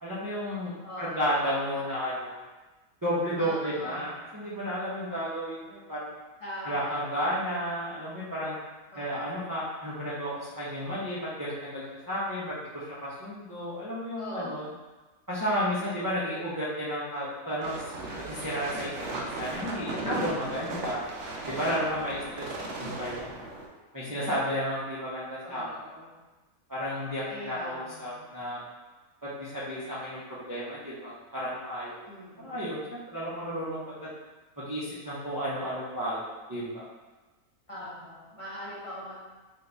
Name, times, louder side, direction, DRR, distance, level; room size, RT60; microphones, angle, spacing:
voice 1, 0.0-0.7 1.0-2.4 3.0-6.1 6.6-8.6 9.0-14.7 15.3-17.9 18.3-21.0 21.5-22.5 22.8-23.4 23.9-25.7 26.7-28.6 29.2-32.0 32.4-34.1 34.6-36.8, equal, 30° right, -10 dB, 0.3 m, -32 dB
voice 2, 0.8-1.4 3.4-4.1 6.4-7.1 8.9-9.4 14.2-14.5 19.5-20.9 22.1-22.7 25.4-26.2 27.3-28.3 32.1-32.8 37.7-39.2, equal, 30° left, -10 dB, 0.6 m, -42 dB
sound 1, 17.6-23.7, right 2 dB, 60° right, 0.7 m, -36 dB
3.7 x 2.3 x 3.8 m, 1.2 s
omnidirectional pair, 1.6 m